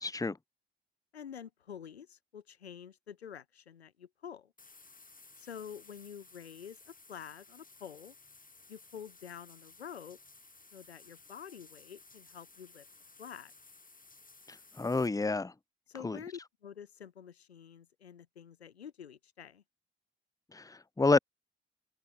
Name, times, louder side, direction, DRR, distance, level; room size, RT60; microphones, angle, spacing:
voice 1, 0.0-0.4 14.5-15.5 16.0-16.2 20.5-21.2, left 3 dB, 10° left, 0.9 m, -29 dB
voice 2, 1.1-4.5 5.4-8.1 8.7-10.2 10.7-12.8 13.2-13.5 15.9-19.6, left 8 dB, 90° left, 4.3 m, -48 dB
sound 1, 4.6-15.1, left 3 dB, 25° left, 7.4 m, -57 dB
open air
figure-of-eight pair, 40°, 31 cm